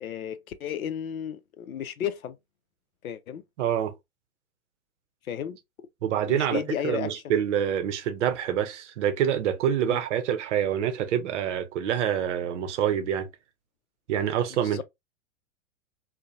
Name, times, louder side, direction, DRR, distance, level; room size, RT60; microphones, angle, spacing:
voice 1, 0.0-2.4 3.0-3.4 5.3-5.6 6.2-7.1 9.8-10.0 14.6-14.8, left 9 dB, 75° left, 0.5 m, -33 dB
voice 2, 3.6-3.9 6.0-13.3 14.1-14.8, right 9 dB, 55° right, 0.6 m, -26 dB
2.7 x 2.1 x 2.4 m
figure-of-eight pair, 100°, 43 cm